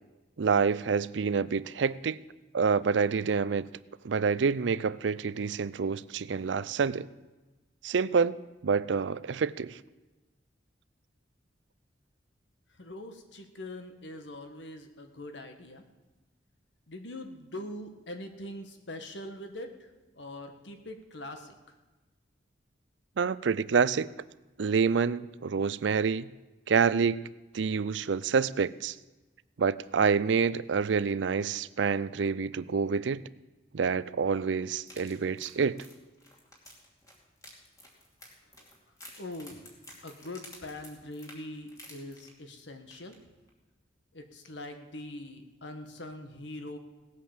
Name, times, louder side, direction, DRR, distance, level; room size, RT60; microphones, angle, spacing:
voice 1, 0.4-2.2 2.5-3.7 4.0-7.1 7.8-8.4 8.6-9.8 23.2-24.1 24.6-26.3 26.7-27.3 27.5-29.0 29.6-33.2 33.7-35.8, right 5 dB, 75° right, 0.5 m, -27 dB
voice 2, 12.8-15.8 16.9-19.7 20.1-21.8 39.2-39.6 40.0-43.2 44.1-46.8, left 1 dB, 75° left, 1.6 m, -42 dB
sound 1, 34.8-42.6 42.9-43.2 43.5-43.6, left 1 dB, 20° left, 2.7 m, -52 dB
18.0 x 8.5 x 7.3 m
head